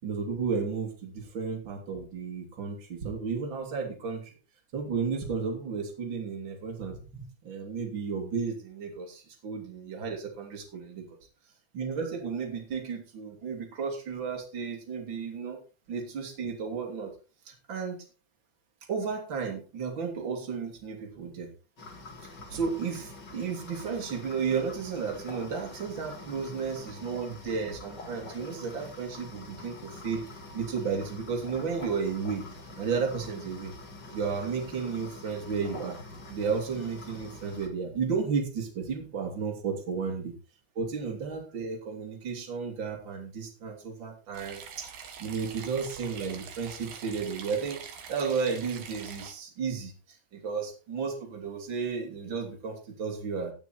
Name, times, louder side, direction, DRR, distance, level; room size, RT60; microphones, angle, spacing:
voice 1, 0.0-4.3 4.7-11.0 11.7-15.6 15.9-17.1 17.4-18.0 18.9-21.5 22.5-30.2 30.5-32.4 32.8-33.7 34.1-36.0 36.3-40.3 40.7-44.9 45.2-47.8 48.1-49.9 50.3-53.5, right 5 dB, 30° right, 1 dB, 3.3 m, -33 dB
sound 1, 21.8-37.7, left 2 dB, 40° left, 1.7 m, -46 dB
sound 2, 44.3-49.3, right 7 dB, 60° right, 3.1 m, -44 dB
17.5 x 6.2 x 4.5 m, 0.36 s
omnidirectional pair, 5.1 m